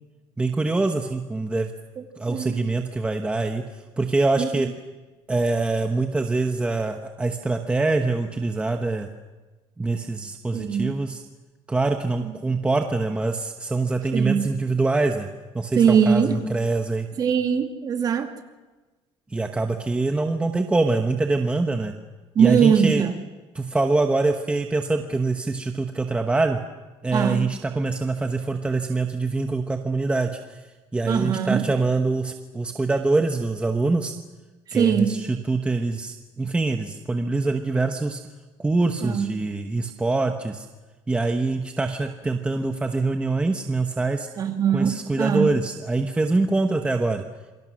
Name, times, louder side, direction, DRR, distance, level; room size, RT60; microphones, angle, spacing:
voice 1, 0.4-1.7 2.2-3.6 4.0-4.7 5.3-9.1 9.8-11.2 11.7-15.3 15.5-17.1 19.3-21.9 22.4-23.0 23.5-26.6 27.0-30.6 30.9-34.1 34.7-38.2 38.6-40.7 41.1-44.3 44.7-47.2, right 3 dB, 10° right, 1.0 m, -24 dB
voice 2, 2.3-2.6 4.4-4.5 10.5-10.9 12.2-12.3 14.1-14.5 15.8-16.4 17.2-18.3 22.4-23.2 27.1-27.5 31.1-31.6 34.7-35.2 39.0-39.3 44.4-45.5, right 7 dB, 35° right, 2.2 m, -21 dB
28.0 x 24.0 x 6.4 m
cardioid pair, 160°, 11 cm